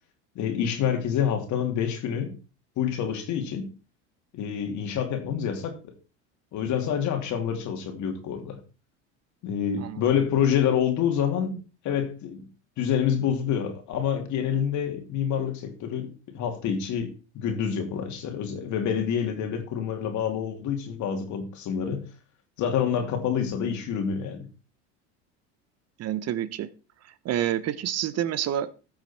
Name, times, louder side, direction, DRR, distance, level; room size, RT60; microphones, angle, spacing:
voice 1, 0.3-2.4 2.8-3.7 4.3-5.9 6.5-8.6 9.4-11.6 11.8-12.4 12.8-22.1 22.6-24.5, left 8 dB, 55° left, 2.8 m, -27 dB
voice 2, 26.0-26.7 27.2-28.7, right 11 dB, 45° right, 1.0 m, -28 dB
14.5 x 6.2 x 4.4 m
supercardioid pair, 90°, 34 cm